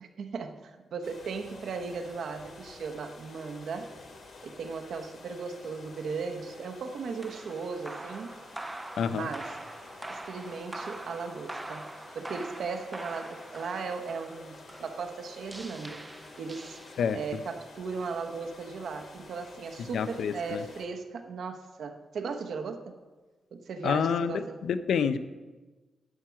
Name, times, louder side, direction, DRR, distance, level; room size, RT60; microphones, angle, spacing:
voice 1, 0.0-3.9 4.4-8.3 9.1-9.5 10.1-16.0 16.4-16.8 17.1-22.9 23.5-24.6, right 5 dB, 60° right, 6 dB, 1.0 m, -37 dB
sound 1, 1.0-20.8, left 3 dB, 55° left, 1.8 m, -50 dB
sound 2, 7.2-17.4, right 2 dB, 10° right, 0.5 m, -43 dB
voice 2, 9.0-9.3 17.0-17.2 19.9-20.6 23.8-25.2, left 7 dB, 75° left, 12 dB, 0.5 m, -28 dB
11.0 x 7.5 x 5.7 m, 1.3 s
wide cardioid pair, 180°, 0 cm